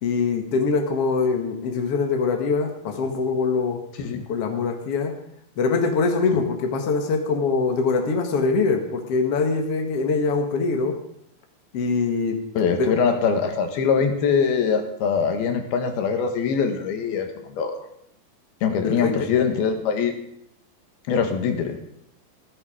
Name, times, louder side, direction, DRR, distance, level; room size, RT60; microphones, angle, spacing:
voice 1, 0.0-3.8 4.3-5.1 5.6-11.0 11.7-12.4 12.8-12.9 18.8-19.3, left 4 dB, 50° left, 3 dB, 2.1 m, -23 dB
voice 2, 12.6-17.8 18.6-20.1 21.1-21.8, left 6 dB, 80° left, 6 dB, 3.6 m, -23 dB
15.5 x 14.0 x 5.0 m, 0.72 s
omnidirectional pair, 4.3 m